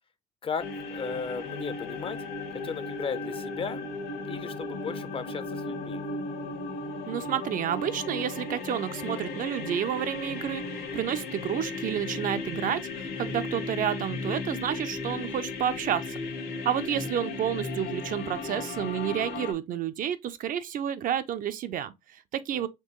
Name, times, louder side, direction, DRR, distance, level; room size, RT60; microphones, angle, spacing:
sound 1, 0.6-19.5, left 3 dB, 80° left, 1.3 m, -35 dB
voice 1, 0.9-2.2 2.6-3.8 4.3-6.0 22.5-22.7, left 5 dB, 35° left, 0.5 m, -35 dB
voice 2, 7.1-16.2 16.6-22.7, right 10 dB, 55° right, 0.5 m, -30 dB
4.4 x 3.0 x 3.0 m
cardioid pair, 110°, 17 cm